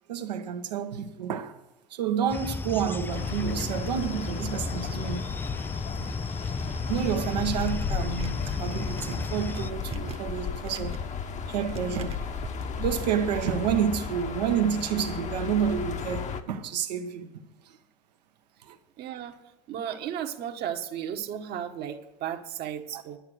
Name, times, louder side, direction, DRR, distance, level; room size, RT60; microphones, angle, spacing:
voice 1, 0.1-1.6 1.9-5.2 6.9-11.0 11.5-12.2 12.8-17.3 18.6-18.8 19.9-20.0 22.9-23.0, right 8 dB, 80° right, 1.1 m, -29 dB
sound 1, 2.3-9.7, left 4 dB, 10° left, 0.3 m, -34 dB
sound 2, 3.1-16.4, left 6 dB, 35° left, 1.1 m, -35 dB
sound 3, 8.0-12.6, right 5 dB, 30° right, 1.1 m, -43 dB
voice 2, 19.0-19.4 19.7-23.2, right 9 dB, 50° right, 1.3 m, -34 dB
11.0 x 9.7 x 6.2 m
hypercardioid pair, 75°, 21 cm